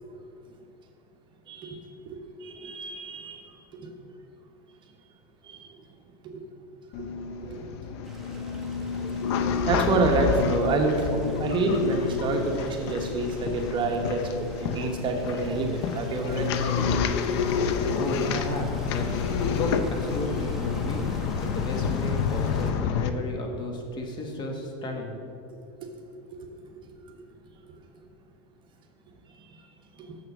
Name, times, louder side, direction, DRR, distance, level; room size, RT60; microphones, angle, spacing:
voice 1, 1.5-1.8 2.1-3.9 5.4-5.8 6.2-6.4 7.0-7.7 9.6-17.0 25.8-26.0 29.4-29.6 30.0-30.2, right 3 dB, 35° right, 3 dB, 1.1 m, -28 dB
sound 1, 6.9-23.1, left 6 dB, 75° left, 0.6 m, -29 dB
Stream, 8.0-22.7, right 1 dB, 5° right, 1.2 m, -46 dB
voice 2, 17.7-19.1 19.6-21.1 21.4-25.1, left 1 dB, 35° left, 2 dB, 1.3 m, -33 dB
7.2 x 6.5 x 6.0 m, 2.5 s
supercardioid pair, 125°, 14 cm